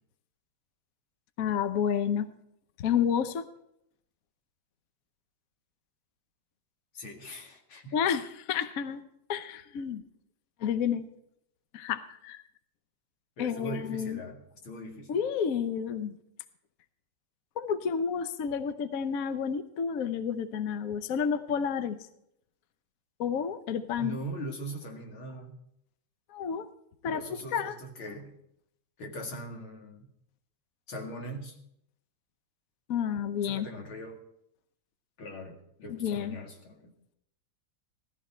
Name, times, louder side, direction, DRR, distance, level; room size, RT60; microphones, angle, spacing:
voice 1, 1.4-2.3 2.8-3.4 7.9-9.0 9.3-10.0 10.6-11.1 11.7-12.4 13.4-14.2 15.1-16.2 17.6-22.0 23.2-24.2 26.3-26.7 27.0-27.2 27.5-27.7 32.9-33.7 35.9-36.4, left 7 dB, 60° left, 11 dB, 1.0 m, -30 dB
voice 2, 6.9-8.0 13.4-15.2 24.0-25.6 27.0-28.3 29.0-30.1 30.9-31.6 33.4-34.2 35.2-36.9, equal, 85° left, 2 dB, 2.9 m, -41 dB
16.5 x 14.0 x 4.4 m, 0.77 s
omnidirectional pair, 2.2 m